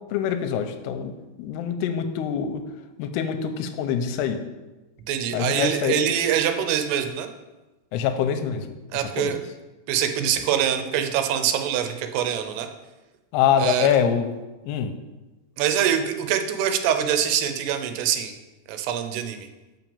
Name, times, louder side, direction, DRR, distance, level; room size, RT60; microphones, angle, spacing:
voice 1, 0.1-1.1 1.4-2.6 3.0-4.4 5.3-6.1 7.9-8.7 9.2-9.4 13.3-14.3 14.6-14.9, left 8 dB, 90° left, 7 dB, 2.6 m, -24 dB
voice 2, 5.1-7.3 8.9-9.4 9.9-12.7 13.6-13.9 15.6-18.3 18.7-19.5, right 9 dB, 85° right, 7 dB, 2.7 m, -24 dB
6.0 x 5.6 x 7.0 m, 1.1 s
omnidirectional pair, 4.6 m